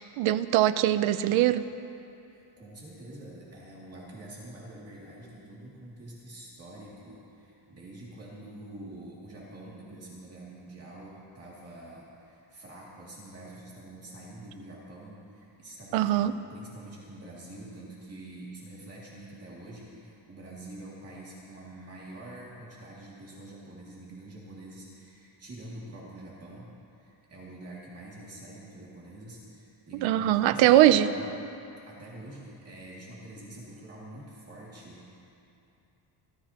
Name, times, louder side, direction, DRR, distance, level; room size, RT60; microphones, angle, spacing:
voice 1, 0.0-1.7 15.9-16.3 30.0-31.1, right 13 dB, 85° right, 13 dB, 0.7 m, -22 dB
voice 2, 2.3-31.6 31.9-35.3, right 1 dB, 30° right, -6 dB, 2.5 m, -46 dB
27.0 x 14.0 x 2.9 m, 2.7 s
cardioid pair, 165°, 46 cm